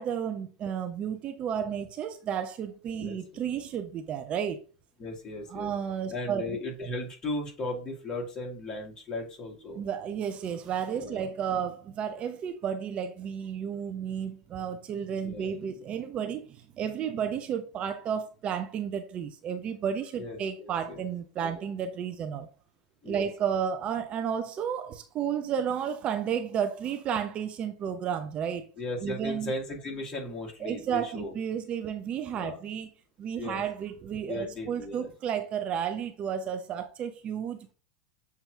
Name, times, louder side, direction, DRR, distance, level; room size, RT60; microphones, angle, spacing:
voice 1, 0.0-4.6 5.5-6.6 9.8-22.5 23.1-28.7 29.0-29.5 30.6-32.9 33.2-37.7, right 8 dB, 35° right, 0.5 m, -32 dB
voice 2, 5.0-5.7 6.1-9.8 10.9-11.2 15.2-15.5 20.2-21.0 21.4-21.6 23.0-23.3 28.8-31.3 32.3-32.6 33.4-33.6 34.3-35.1, left 2 dB, 30° left, 1.7 m, -36 dB
6.9 x 2.8 x 2.3 m
hypercardioid pair, 90°, 3 cm